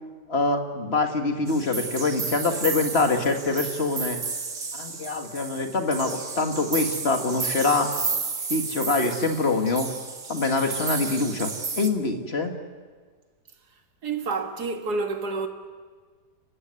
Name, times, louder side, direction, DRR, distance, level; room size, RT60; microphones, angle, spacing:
voice 1, 0.3-4.2 4.7-7.9 8.5-9.9 10.3-12.5, left 3 dB, 35° left, 2.1 m, -25 dB
sound 1, 1.5-11.9, right 4 dB, 45° right, 2.1 m, -32 dB
voice 2, 14.0-15.5, right 4 dB, 70° right, 2.4 m, -28 dB
30.0 x 15.5 x 9.6 m
omnidirectional pair, 1.8 m